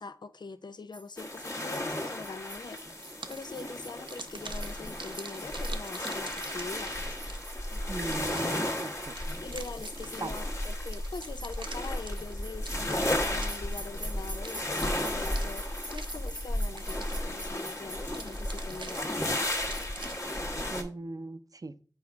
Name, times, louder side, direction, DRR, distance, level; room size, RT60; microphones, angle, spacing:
voice 1, 0.0-7.0 9.4-19.6, left 4 dB, 65° left, 0.5 m, -43 dB
sound 1, 0.9-20.4, right 1 dB, 15° left, 1.7 m, -48 dB
sound 2, 1.2-20.8, left 1 dB, 35° left, 1.4 m, -34 dB
sound 3, 2.9-3.6 4.1-7.7 8.1-10.4 10.9-14.0 14.4-16.5 16.8-17.5 18.1-20.4, right 4 dB, 80° right, 0.7 m, -47 dB
voice 2, 7.9-9.2 10.2-10.3 20.7-21.7, right 2 dB, 45° right, 0.6 m, -38 dB
9.5 x 4.8 x 3.5 m
wide cardioid pair, 65°, 8 cm